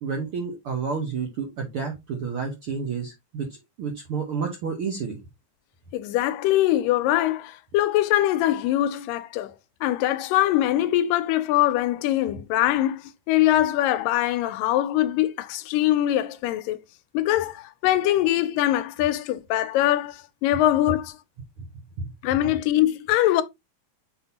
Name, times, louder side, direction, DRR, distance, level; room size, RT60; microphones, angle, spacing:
voice 1, 0.0-5.2 21.6-21.7 22.0-22.1, right 5 dB, 65° right, 1.3 m, -30 dB
voice 2, 5.9-9.5 9.8-13.0 13.3-16.8 17.1-21.2 22.2-23.4, left 14 dB, 80° left, 2.1 m, -22 dB
7.7 x 4.4 x 2.8 m
omnidirectional pair, 4.0 m